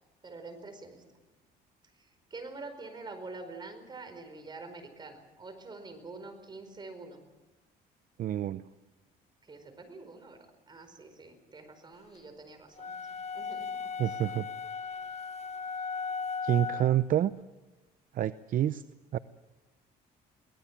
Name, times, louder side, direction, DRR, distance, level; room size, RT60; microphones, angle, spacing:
voice 1, 0.2-1.0 2.0-7.2 9.4-13.0 13.3-13.7 14.0-14.2, right 3 dB, 25° right, 6 dB, 4.8 m, -46 dB
voice 2, 8.2-8.6 14.0-14.5 16.4-17.3 18.1-18.8 19.1-19.2, right 11 dB, 55° right, 14 dB, 0.6 m, -28 dB
sound 1, 12.8-17.0, left 5 dB, 40° left, 1.2 m, -37 dB
24.0 x 18.5 x 7.3 m, 1.1 s
cardioid pair, 110°, 17 cm